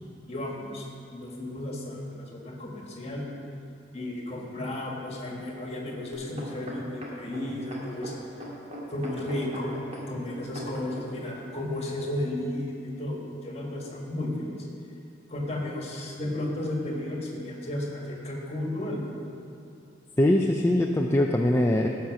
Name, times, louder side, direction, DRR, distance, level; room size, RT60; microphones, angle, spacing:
voice 1, 0.3-3.3 3.9-8.2 8.9-9.8 10.1-14.6 15.3-19.2, left 1 dB, 35° left, -1 dB, 1.7 m, -33 dB
sound 1, 6.1-11.0 11.7-11.8, equal, 35° right, 2.2 m, -40 dB
voice 2, 20.2-21.9, left 1 dB, 15° left, 1 dB, 0.4 m, -22 dB
15.0 x 5.7 x 6.1 m, 2.6 s
head